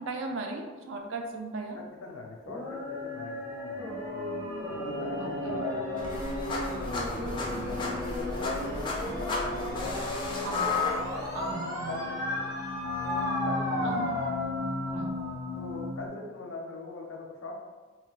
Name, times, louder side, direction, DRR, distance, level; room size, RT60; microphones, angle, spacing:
voice 1, 0.0-1.8 5.2-5.3 7.6-8.0 10.4-10.8 11.3-12.0 13.8-14.1 14.9-15.2, right 3 dB, 65° right, 3 dB, 0.4 m, -37 dB
voice 2, 2.0-4.5 4.8-6.1 6.8-10.4 11.1-12.5 13.0-14.0 15.6-17.5, left 3 dB, 85° left, 0 dB, 0.6 m, -41 dB
sound 1, 2.5-16.1, left 1 dB, 15° right, 0.7 m, -34 dB
sound 2, 6.0-11.5, left 3 dB, 25° left, 0.3 m, -33 dB
2.3 x 2.1 x 3.9 m, 1.4 s
head